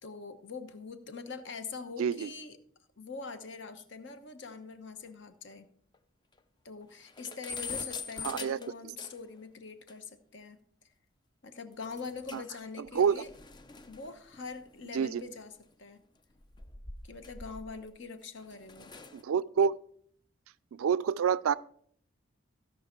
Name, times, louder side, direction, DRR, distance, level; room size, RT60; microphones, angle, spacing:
voice 1, 0.0-2.6 3.0-5.7 6.6-10.6 11.4-13.3 13.9-16.0 17.0-18.9, left 4 dB, 60° left, 1.0 m, -43 dB
voice 2, 2.0-2.3 8.2-8.6 12.3-12.4 12.9-13.2 14.9-15.2 19.1-19.7 20.7-21.6, right 7 dB, 85° right, 0.4 m, -27 dB
sound 1, 5.1-5.2 5.5-5.6 5.9-6.0 6.4-6.5 6.8-9.4 9.9-10.0 11.8-12.6 12.9-15.5 16.3-17.9 18.4-19.2, left 5 dB, 20° left, 0.5 m, -44 dB
15.5 x 5.7 x 4.4 m
head